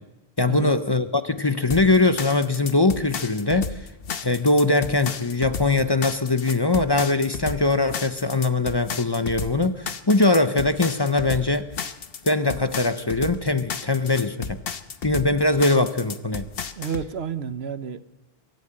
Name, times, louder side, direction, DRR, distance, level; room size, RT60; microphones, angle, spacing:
voice 1, 0.4-3.8 4.2-11.7 12.2-14.6 15.0-16.5, left 2 dB, 25° left, 11 dB, 0.8 m, -21 dB
sound 1, 1.7-17.1, left 6 dB, 70° left, 1.2 m, -33 dB
voice 2, 16.8-18.0, right 7 dB, 80° right, 13 dB, 1.2 m, -30 dB
23.0 x 13.5 x 8.8 m, 0.95 s
omnidirectional pair, 1.0 m